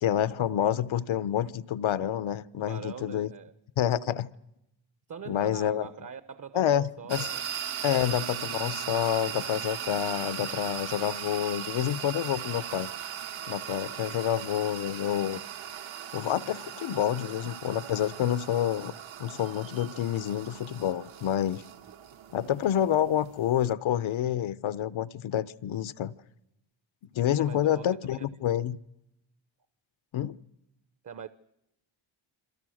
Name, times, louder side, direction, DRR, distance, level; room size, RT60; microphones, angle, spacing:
voice 1, 0.0-3.3 3.8-4.3 5.3-5.9 6.5-7.3 7.8-12.9 13.5-15.4 16.1-18.9 19.2-21.6 22.3-26.1 27.1-28.8 30.1-30.4, left 10 dB, 80° left, 0.9 m, -28 dB
voice 2, 2.6-3.5 4.0-4.1 5.1-7.4 7.7-8.0 21.8-21.9 27.4-28.3 31.0-31.3, right 7 dB, 40° right, 0.9 m, -43 dB
sound 1, 7.1-23.7, right 9 dB, 80° right, 1.6 m, -38 dB
27.0 x 26.0 x 6.4 m
cardioid pair, 115°, 47 cm